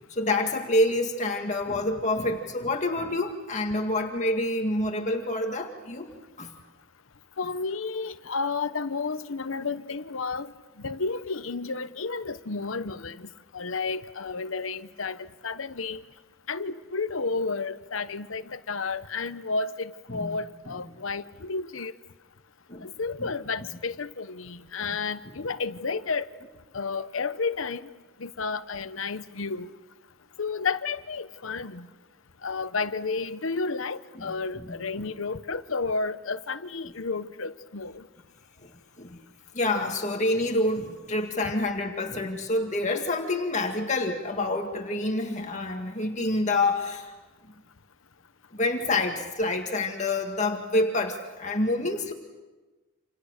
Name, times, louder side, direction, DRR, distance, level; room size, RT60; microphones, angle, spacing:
voice 1, 0.1-6.1 6.4-6.5 20.1-20.3 22.7-22.9 23.2-23.3 24.8-24.9 34.6-34.7 35.0-35.1 38.6-38.7 39.0-39.2 39.5-47.1 48.5-52.1, left 2 dB, 35° left, 2.0 m, -27 dB
voice 2, 7.4-10.5 10.8-13.3 13.5-16.0 16.5-21.9 22.8-26.3 26.7-27.9 28.2-29.7 30.4-31.9 32.4-38.0, left 4 dB, 85° left, 1.0 m, -31 dB
29.5 x 27.5 x 6.7 m
head